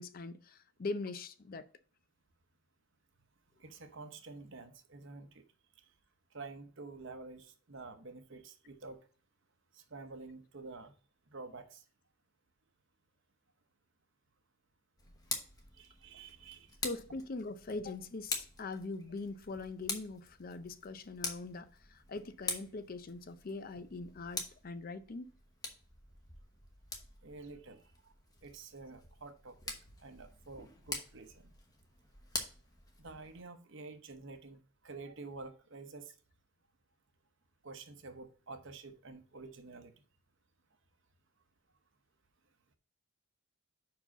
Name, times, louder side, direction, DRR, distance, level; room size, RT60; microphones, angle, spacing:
voice 1, 0.0-1.7 16.8-25.3, left 3 dB, 40° left, 0.5 m, -42 dB
voice 2, 3.6-5.4 6.3-9.1 9.7-10.9 11.3-11.8 15.7-16.7 27.2-28.1 28.4-31.5 33.0-36.1 37.6-39.9, right 3 dB, 55° right, 0.9 m, -49 dB
Tick, 15.0-33.4, left 3 dB, 15° left, 1.0 m, -45 dB
5.5 x 4.8 x 5.8 m
head